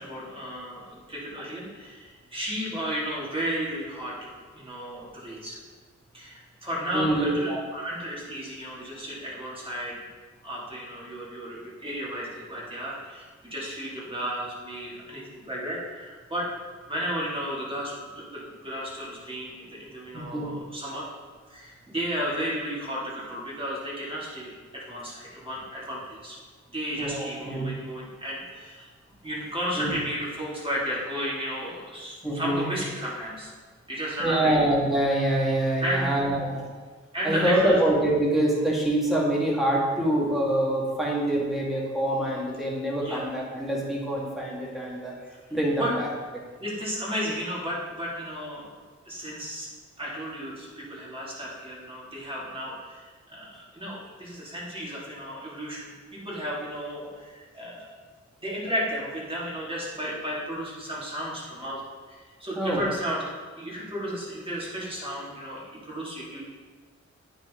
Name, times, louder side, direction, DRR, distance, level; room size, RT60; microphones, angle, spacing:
voice 1, 0.0-4.1 4.5-5.6 6.1-10.0 10.4-16.5 16.9-21.0 21.5-26.4 26.7-28.9 29.2-33.5 33.9-34.6 35.8-36.2 37.1-37.8 43.0-43.3 45.8-45.9 46.6-48.8 49.0-49.7 50.0-58.0 58.4-61.8 62.1-63.2 63.6-66.5, equal, 20° right, -6 dB, 2.5 m, -33 dB
voice 2, 6.9-7.6 20.1-20.5 27.0-27.6 29.8-30.0 32.2-32.7 34.2-36.9 37.2-45.2 45.5-46.1 62.6-62.8, right 1 dB, ahead, -5 dB, 2.0 m, -25 dB
9.1 x 5.5 x 3.8 m, 1.4 s
wide cardioid pair, 90°, 29 cm